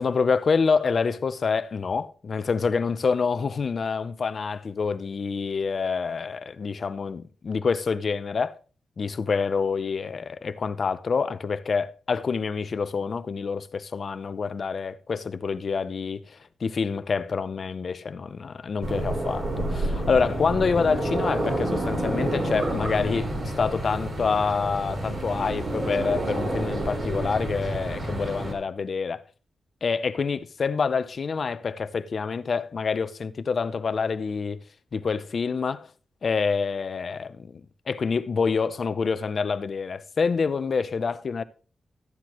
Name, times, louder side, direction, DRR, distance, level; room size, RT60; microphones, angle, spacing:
voice 1, 0.0-8.6 9.0-23.3 23.6-29.2 29.8-34.6 34.9-35.9 36.2-37.6 37.9-41.4, left 5 dB, 45° left, 0.6 m, -27 dB
sound 1, 18.8-28.5, right 1 dB, 40° right, 3.8 m, -29 dB
13.5 x 9.7 x 3.0 m
wide cardioid pair, 120°, 0 cm